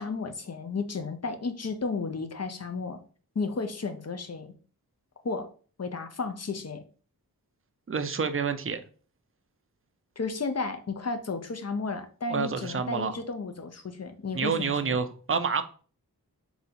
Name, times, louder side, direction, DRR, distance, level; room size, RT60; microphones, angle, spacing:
voice 1, 0.0-3.0 3.3-4.5 5.2-5.5 5.8-6.8 10.2-15.0, left 4 dB, 40° left, 7 dB, 0.7 m, -33 dB
voice 2, 7.9-8.8 12.3-13.1 14.3-15.6, right 5 dB, 35° right, 8 dB, 0.5 m, -28 dB
4.0 x 2.8 x 4.2 m, 0.40 s
wide cardioid pair, 55°, 38 cm